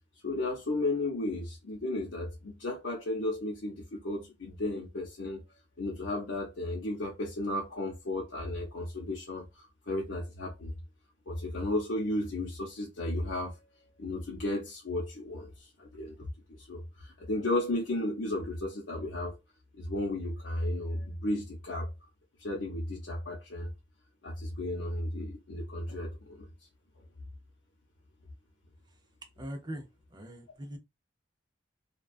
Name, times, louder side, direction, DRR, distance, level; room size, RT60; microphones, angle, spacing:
voice 1, 0.2-5.4 5.8-10.7 11.3-13.7 14.0-16.2 16.5-19.3 19.7-21.9 22.4-23.7 24.2-26.5, left 1 dB, 80° left, 0.7 m, -34 dB
voice 2, 29.4-29.9 30.1-30.8, equal, 25° right, 0.6 m, -41 dB
2.3 x 2.3 x 2.4 m
head